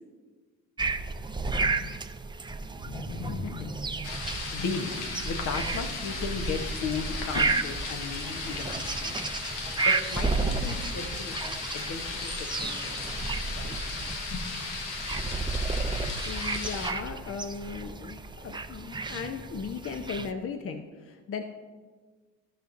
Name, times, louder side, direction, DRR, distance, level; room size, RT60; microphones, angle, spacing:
sound 1, 0.8-20.3, right 3 dB, 15° right, 0.5 m, -32 dB
voice 1, 2.8-3.7 4.5-4.9 5.2-9.2 9.8-13.2 13.5-13.8 14.3-14.4, left 5 dB, 60° left, 5 dB, 1.1 m, -35 dB
sound 2, 4.0-16.9, left 4 dB, 90° left, 1.0 m, -36 dB
voice 2, 16.2-21.4, left 6 dB, 40° left, 7 dB, 0.7 m, -37 dB
16.0 x 5.8 x 2.6 m, 1.4 s
hypercardioid pair, 55°, 34 cm